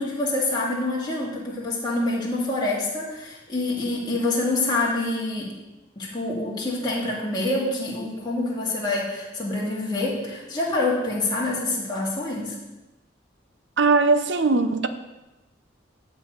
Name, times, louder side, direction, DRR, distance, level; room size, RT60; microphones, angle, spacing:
voice 1, 0.0-5.6 6.0-12.6, left 2 dB, 20° left, 2.2 m, -26 dB
voice 2, 13.8-14.9, right 3 dB, 65° right, 0.7 m, -20 dB
11.5 x 4.1 x 8.0 m
head